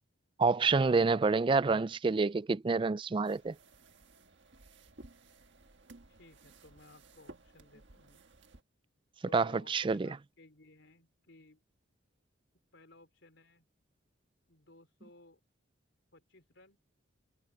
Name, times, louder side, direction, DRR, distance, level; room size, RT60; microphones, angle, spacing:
voice 1, 0.4-3.5 9.3-10.1, right 4 dB, 25° right, 0.3 m, -28 dB
sound 1, 3.2-8.6, right 2 dB, 65° right, 1.6 m, -57 dB
voice 2, 6.1-8.2 9.2-11.6 12.7-13.7 14.5-15.4 16.1-16.8, left 2 dB, 65° left, 4.4 m, -58 dB
head